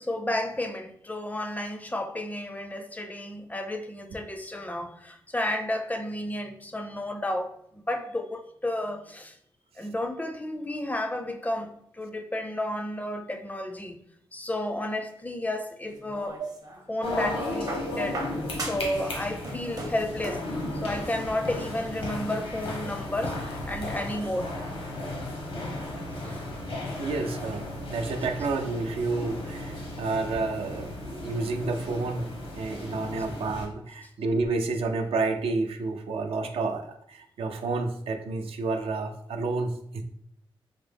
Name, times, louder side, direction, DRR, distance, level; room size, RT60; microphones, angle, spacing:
voice 1, 0.1-9.3 9.8-14.0 14.3-16.4 16.9-20.4 20.7-24.5 26.2-26.6, left 1 dB, 15° left, 0.4 m, -32 dB
sound 1, 15.9-16.9 17.7-19.0 19.3-20.5 21.6-21.7, right 2 dB, 40° right, 0.6 m, -38 dB
sound 2, 17.0-33.7, left 2 dB, 85° left, 1.0 m, -35 dB
Musical instrument, 22.5-32.6, right 1 dB, 65° left, 0.6 m, -47 dB
voice 2, 27.0-32.3 32.5-40.0, right 3 dB, 85° right, 0.4 m, -30 dB
3.8 x 2.0 x 3.3 m
cardioid pair, 70°, 10 cm